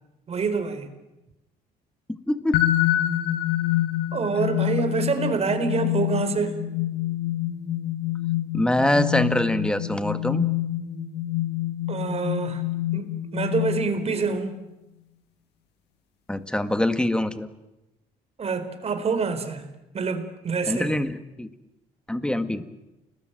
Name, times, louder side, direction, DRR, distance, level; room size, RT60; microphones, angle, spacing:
voice 1, 0.3-0.9 4.1-6.6 11.9-12.6 12.9-14.5 18.4-19.7 19.9-21.0, right 4 dB, 40° right, 4.3 m, -26 dB
voice 2, 2.3-2.6 8.5-10.5 16.3-17.5 20.7-21.5 22.1-22.6, left 1 dB, 5° left, 1.9 m, -24 dB
sound 1, 2.5-14.3, left 14 dB, 80° left, 1.7 m, -27 dB
30.0 x 20.5 x 9.2 m
cardioid pair, 110°, 17 cm